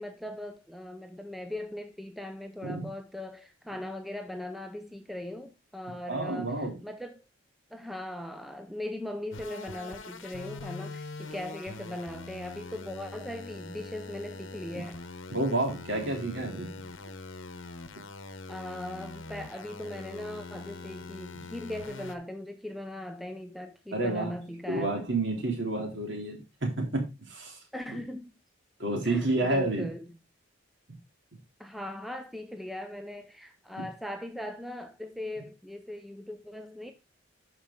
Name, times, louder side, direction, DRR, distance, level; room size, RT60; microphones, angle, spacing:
voice 1, 0.0-7.2 7.7-15.0 18.5-25.0 27.7-28.4 29.0-30.2 31.6-36.9, left 1 dB, ahead, 0.5 m, -39 dB
voice 2, 6.1-6.8 14.7-14.8 15.3-16.7 23.9-24.3 24.7-27.6 27.9-28.0 28.8-29.9 33.8-33.9, right 2 dB, 60° right, 3.1 m, -30 dB
sound 1, 9.3-22.2, left 3 dB, 75° left, 1.0 m, -43 dB
11.0 x 5.0 x 3.7 m
head